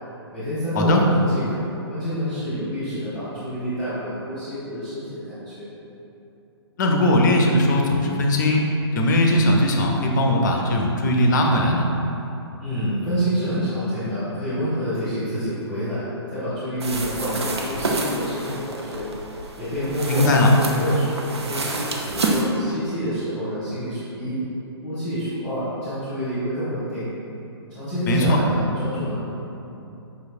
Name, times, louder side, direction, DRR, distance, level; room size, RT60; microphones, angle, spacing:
voice 1, 0.3-1.6 1.9-5.7 12.6-16.0 16.3-19.1 19.6-20.3 20.5-21.2 21.5-24.4 24.8-27.1 27.7-29.2, equal, 5° left, -14 dB, 1.0 m, -28 dB
voice 2, 6.8-8.6 8.9-11.9 20.1-20.5 28.1-28.4, left 1 dB, 40° left, 1 dB, 0.5 m, -19 dB
sound 1, 16.8-22.4, right 2 dB, 70° right, 0.5 m, -28 dB
5.2 x 3.1 x 2.4 m, 3.0 s
figure-of-eight pair, 125°, 14 cm